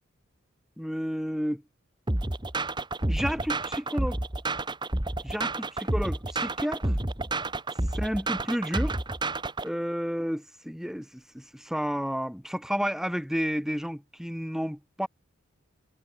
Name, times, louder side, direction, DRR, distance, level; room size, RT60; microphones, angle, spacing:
voice 1, 0.8-1.6 3.1-4.2 5.2-7.0 7.9-9.0 9.6-15.1, equal, ahead, 2.8 m, -31 dB
sound 1, 2.1-9.7, right 2 dB, 20° right, 1.4 m, -30 dB
head